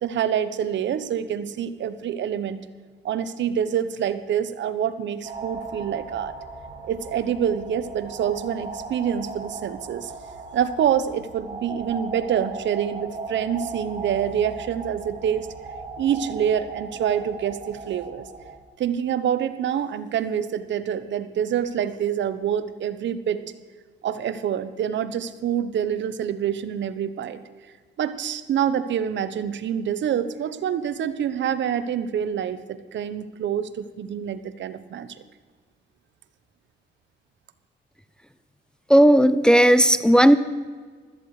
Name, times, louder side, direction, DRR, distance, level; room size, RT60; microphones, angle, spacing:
voice 1, 0.0-2.6 3.0-6.3 6.9-10.1 10.5-15.5 16.0-18.3 18.8-23.4 24.0-27.4 28.0-35.2, right 9 dB, 65° right, 13 dB, 1.0 m, -26 dB
sound 1, 5.2-18.6, right 3 dB, 35° right, 3.4 m, -37 dB
voice 2, 38.9-40.4, equal, 5° left, 12 dB, 0.7 m, -15 dB
16.0 x 13.5 x 4.9 m, 1.5 s
cardioid pair, 90°, 20 cm